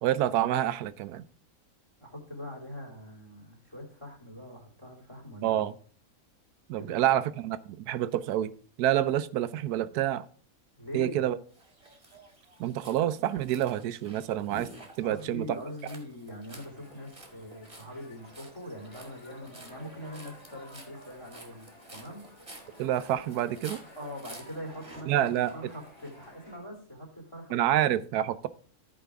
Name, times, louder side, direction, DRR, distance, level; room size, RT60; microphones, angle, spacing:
voice 1, 0.0-1.2 5.4-5.7 6.7-8.5 8.8-10.2 10.9-11.4 12.6-14.7 15.0-15.5 22.8-23.8 25.1-25.5 27.5-28.5, right 12 dB, 90° right, 15 dB, 1.1 m, -27 dB
voice 2, 2.0-5.6 6.8-7.2 10.8-11.3 15.0-22.2 23.9-27.9, equal, 20° left, 1 dB, 3.0 m, -43 dB
sound 1, 11.5-26.3, right 1 dB, 20° right, 1.9 m, -51 dB
sound 2, 16.5-26.6, equal, 65° left, 3.2 m, -53 dB
14.5 x 5.0 x 3.5 m, 0.44 s
omnidirectional pair, 1.6 m